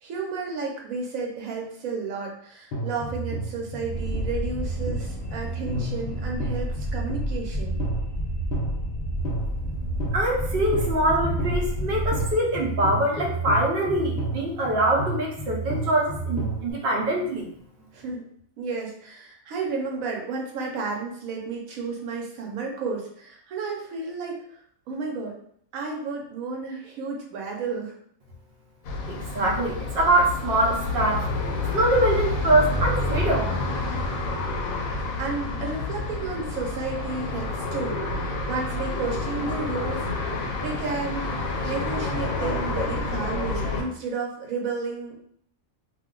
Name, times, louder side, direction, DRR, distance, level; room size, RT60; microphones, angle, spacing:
voice 1, 0.0-7.8 17.9-18.3 18.6-25.4 25.7-27.9 35.2-41.4 41.6-45.2, right 4 dB, 90° right, 0 dB, 1.1 m, -32 dB
sound 1, 2.7-16.7, right 2 dB, 55° left, 0.8 m, -31 dB
sound 2, 3.9-12.3, equal, 35° left, 1.0 m, -31 dB
voice 2, 10.1-17.5 29.1-31.3 31.7-33.5, right 1 dB, 50° right, -1 dB, 0.8 m, -23 dB
sound 3, 28.8-43.8, left 2 dB, 90° left, 1.0 m, -29 dB
2.5 x 2.2 x 3.6 m, 0.65 s
omnidirectional pair, 1.4 m